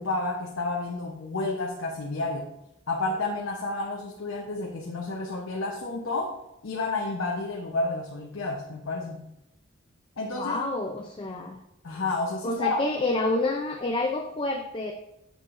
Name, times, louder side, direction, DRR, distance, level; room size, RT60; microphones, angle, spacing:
voice 1, 0.0-2.5 2.9-9.2 10.2-10.6 11.8-12.8, left 3 dB, 80° left, -1 dB, 0.9 m, -30 dB
voice 2, 10.3-11.6 12.4-14.9, left 2 dB, 25° left, 3 dB, 0.4 m, -28 dB
7.5 x 6.9 x 2.6 m, 0.87 s
head